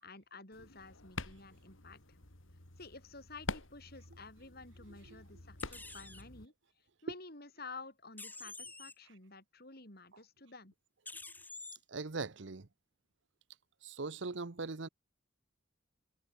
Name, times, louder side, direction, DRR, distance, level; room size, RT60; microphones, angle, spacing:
voice 1, 0.0-2.2 2.8-6.5 7.0-10.7, left 3 dB, 50° left, 7.7 m, -51 dB
sound 1, 0.5-6.5, left 3 dB, 75° left, 3.2 m, -47 dB
sound 2, 5.6-6.2 8.2-8.9 11.0-11.8, left 3 dB, 10° left, 1.7 m, -48 dB
voice 2, 11.9-12.7 13.8-14.9, right 3 dB, 65° right, 0.9 m, -40 dB
head